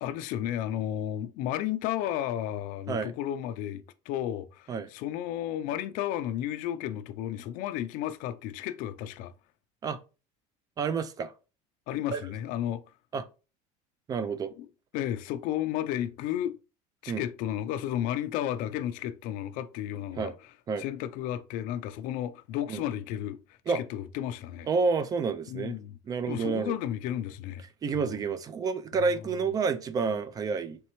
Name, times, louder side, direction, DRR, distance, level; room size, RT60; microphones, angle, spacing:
voice 1, 0.0-9.3 11.9-12.8 14.6-14.7 14.9-16.5 17.0-20.3 20.8-23.4 23.7-24.7 25.5-26.0 26.3-27.6 27.9-28.2, left 11 dB, 60° left, 0.4 m, -33 dB
voice 2, 10.8-11.3 12.1-12.2 13.1-13.2 14.1-14.5 17.1-17.2 20.2-20.3 20.7-20.8 22.7-22.8 23.7-23.8 24.7-25.8 26.1-26.8 27.8-30.8, right 5 dB, 25° right, 0.4 m, -29 dB
4.2 x 3.3 x 3.0 m
supercardioid pair, 135°, 16 cm